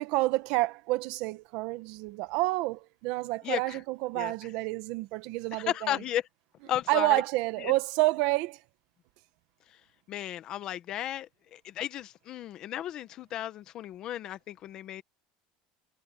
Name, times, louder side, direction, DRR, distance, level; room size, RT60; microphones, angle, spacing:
voice 1, 0.0-6.0 6.9-8.6, right 20 dB, 50° right, 1.1 m, -29 dB
voice 2, 3.4-3.8 4.1-4.3 5.5-6.2 6.7-7.2 7.6-7.7 10.1-15.0, left 12 dB, 35° left, 1.0 m, -34 dB
cardioid pair, 175°, 2 cm